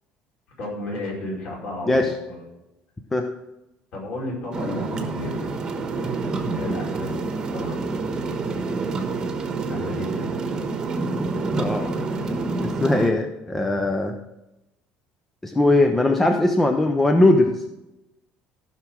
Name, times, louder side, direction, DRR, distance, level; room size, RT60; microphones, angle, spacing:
voice 1, 0.6-2.5 3.9-5.5 6.4-8.1 9.7-10.4, left 1 dB, 45° left, -3 dB, 4.9 m, -33 dB
sound 1, 4.5-13.1, right 3 dB, 25° right, 1.2 m, -27 dB
voice 2, 11.6-12.0 12.8-14.1 15.4-17.5, left 2 dB, 10° left, 5 dB, 0.6 m, -20 dB
14.5 x 6.0 x 6.2 m, 0.91 s
cardioid pair, 175°, 3 cm